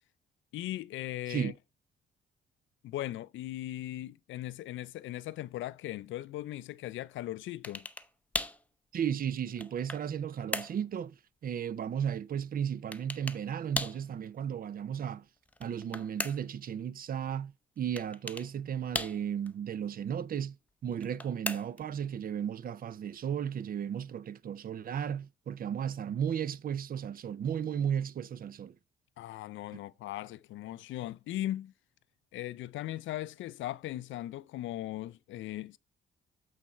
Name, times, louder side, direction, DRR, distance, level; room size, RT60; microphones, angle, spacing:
voice 1, 0.5-1.5 2.8-7.9 29.2-31.7 32.3-35.8, left 14 dB, 75° left, 0.4 m, -38 dB
sound 1, 7.6-8.1 8.3-8.6 9.3-10.1 10.5-10.8 12.9-13.4 13.7-14.0 15.5-16.6 18.0-18.5 18.9-19.5 20.9-21.9, left 1 dB, 5° left, 0.7 m, -37 dB
voice 2, 8.9-11.2 11.4-15.2 15.6-20.6 20.8-28.8, right 8 dB, 45° right, 0.5 m, -34 dB
8.5 x 4.1 x 4.4 m
cardioid pair, 90°, 20 cm